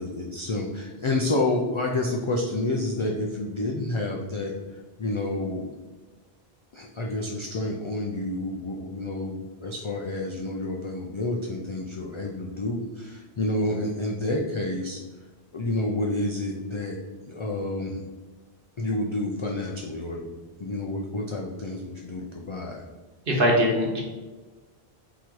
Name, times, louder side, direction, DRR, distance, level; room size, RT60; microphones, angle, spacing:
voice 1, 0.0-5.7 6.7-15.0 15.5-17.0 17.3-18.0 18.8-20.3 20.6-22.8, left 2 dB, 50° left, -1 dB, 0.3 m, -29 dB
voice 2, 23.3-24.0, equal, 60° right, -2 dB, 1.1 m, -21 dB
3.8 x 3.0 x 4.5 m, 1.3 s
omnidirectional pair, 1.1 m